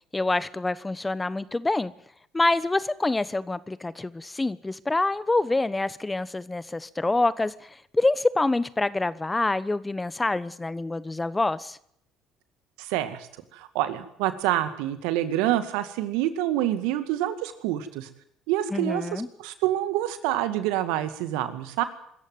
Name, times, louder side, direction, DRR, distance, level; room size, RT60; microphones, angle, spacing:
voice 1, 0.1-1.9 2.3-11.8 18.7-19.3, left 2 dB, 15° left, 1.1 m, -26 dB
voice 2, 12.8-13.3 13.5-18.1 18.5-21.8, right 13 dB, 75° right, 2.1 m, -27 dB
25.0 x 14.5 x 9.6 m
hypercardioid pair, 60°, 0 cm